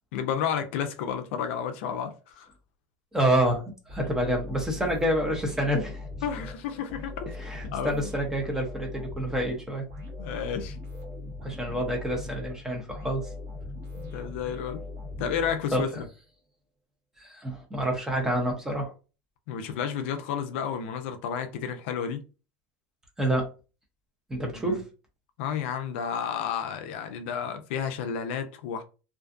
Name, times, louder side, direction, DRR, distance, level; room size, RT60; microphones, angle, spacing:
voice 1, 0.1-2.5 6.2-7.4 7.6-8.1 10.2-10.8 11.7-11.8 14.0-14.8 15.2-16.0 19.5-22.2 24.6-24.8 25.4-28.8, left 7 dB, 70° left, 0.4 m, -31 dB
voice 2, 3.1-6.0 7.4-9.8 11.4-13.3 15.7-16.0 17.2-18.9 23.2-23.5 24.3-24.9, right 1 dB, 5° right, 0.5 m, -28 dB
sound 1, 3.9-16.1, left 2 dB, 45° right, 1.0 m, -40 dB
2.5 x 2.4 x 2.4 m
supercardioid pair, 165°, 7 cm